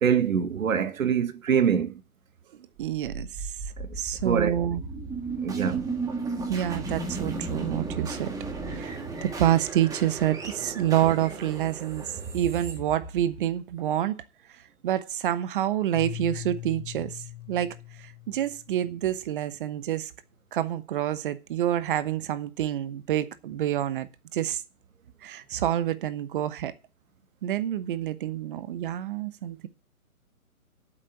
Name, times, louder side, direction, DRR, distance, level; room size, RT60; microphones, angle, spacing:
voice 1, 0.0-2.0 3.8-4.0 4.2-4.6 5.4-5.9, right 7 dB, 70° right, 1.6 m, -24 dB
sound 1, 2.8-13.8, right 3 dB, 10° right, 1.6 m, -35 dB
voice 2, 2.8-3.5 4.0-4.8 6.5-8.3 8.7-14.2 14.8-17.7 18.3-20.1 20.5-24.6 25.2-26.7 27.4-29.7, right 11 dB, 35° right, 1.0 m, -28 dB
Keyboard (musical), 15.9-19.0, left 14 dB, 60° left, 1.4 m, -40 dB
8.7 x 7.4 x 8.8 m
hypercardioid pair, 140°, 43 cm